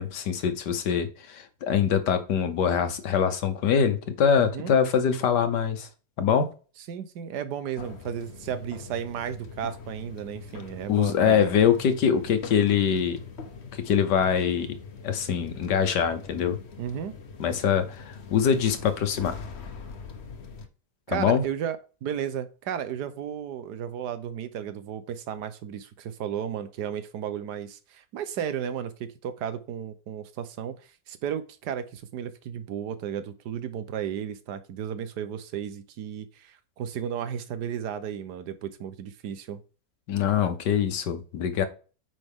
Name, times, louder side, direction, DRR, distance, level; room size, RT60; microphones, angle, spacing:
voice 1, 0.0-5.9 6.2-6.5 10.9-13.2 13.7-14.7 15.0-16.6 17.4-18.0 18.3-19.4 21.1-21.4 40.1-41.6, left 7 dB, 80° left, 9 dB, 1.7 m, -23 dB
voice 2, 4.4-4.7 6.9-11.5 16.8-17.1 21.1-30.8 31.1-39.6, right 9 dB, 80° right, 12 dB, 1.4 m, -34 dB
sound 1, 7.8-20.7, left 5 dB, 45° left, 1.1 m, -43 dB
8.9 x 5.5 x 3.6 m, 0.36 s
omnidirectional pair, 1.8 m